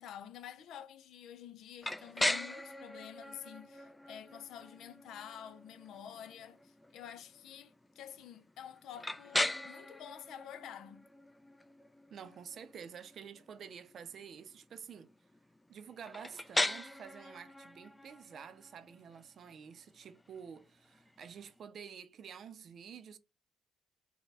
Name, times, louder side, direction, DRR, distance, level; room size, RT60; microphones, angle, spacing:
voice 1, 0.0-11.1, left 9 dB, 80° left, 0.5 m, -49 dB
sound 1, 1.8-21.6, left 1 dB, 10° left, 0.3 m, -40 dB
voice 2, 12.1-15.1 15.7-23.2, right 7 dB, 60° right, 0.5 m, -49 dB
4.2 x 2.2 x 3.4 m
cardioid pair, 90°, 0 cm